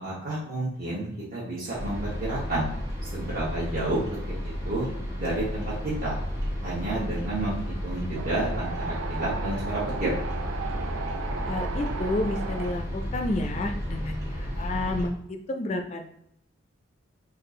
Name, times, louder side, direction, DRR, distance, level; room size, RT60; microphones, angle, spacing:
voice 1, 0.0-2.7 3.0-4.0 4.3-4.9 5.2-5.7 6.0-6.2 6.6-10.1, right 2 dB, 45° right, -9 dB, 1.0 m, -30 dB
sound 1, 1.7-15.1, equal, 15° right, 0.9 m, -33 dB
Wind, 8.2-12.7, right 4 dB, 75° right, 0.5 m, -35 dB
voice 2, 11.5-16.1, left 2 dB, 30° left, 5 dB, 0.4 m, -30 dB
3.6 x 2.5 x 3.7 m, 0.76 s
head